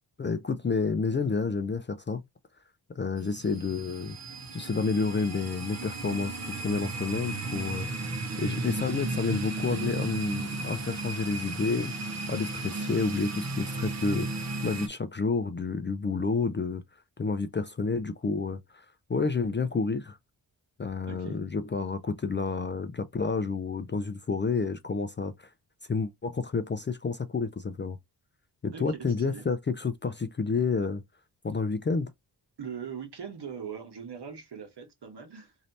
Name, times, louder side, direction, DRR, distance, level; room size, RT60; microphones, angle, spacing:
voice 1, 0.2-2.2 3.0-4.2 4.5-7.9 8.4-11.9 12.3-16.8 17.2-18.8 19.1-20.2 20.8-25.5 25.9-28.0 28.6-31.0 31.4-32.1, left 4 dB, 30° left, 0.3 m, -30 dB
sound 1, 3.2-14.9, right 3 dB, 40° right, 0.6 m, -35 dB
voice 2, 21.1-21.4 28.7-29.5 32.6-35.6, right 7 dB, 70° right, 1.3 m, -41 dB
3.2 x 2.7 x 4.0 m
wide cardioid pair, 145°, 42 cm